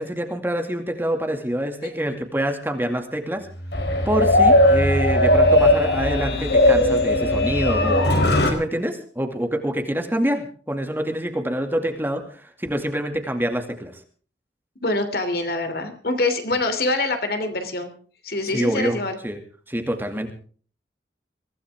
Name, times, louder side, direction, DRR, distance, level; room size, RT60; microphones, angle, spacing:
voice 1, 0.0-3.5 4.1-8.1 8.5-13.9 18.5-19.0 19.2-19.4 19.7-20.3, equal, 10° right, 5 dB, 2.3 m, -26 dB
sound 1, 3.6-8.5, left 1 dB, 75° left, 4.1 m, -18 dB
voice 2, 14.8-17.9 18.2-19.2, left 2 dB, 60° left, 7 dB, 3.0 m, -25 dB
23.5 x 16.5 x 3.6 m, 0.43 s
head